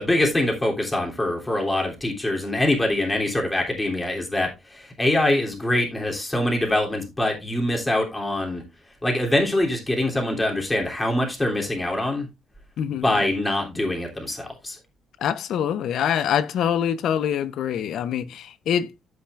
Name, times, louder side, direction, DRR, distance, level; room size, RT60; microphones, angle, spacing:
voice 1, 0.0-8.6 9.0-12.3 12.9-14.8, left 1 dB, 15° left, 3.1 m, -24 dB
voice 2, 12.8-13.2 15.2-18.9, left 9 dB, 75° left, 0.8 m, -25 dB
14.5 x 5.9 x 2.5 m
cardioid pair, 90°, 0 cm